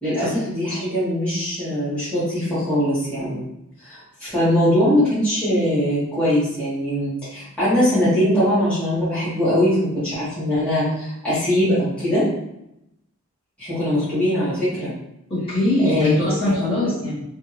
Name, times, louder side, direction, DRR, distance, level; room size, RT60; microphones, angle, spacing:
voice 1, 0.0-3.4 3.8-12.2 13.6-14.9 15.8-16.5, equal, 5° left, -13 dB, 1.3 m, -21 dB
voice 2, 15.3-17.2, left 1 dB, 25° left, -12 dB, 1.3 m, -21 dB
2.7 x 2.4 x 2.9 m, 0.82 s
head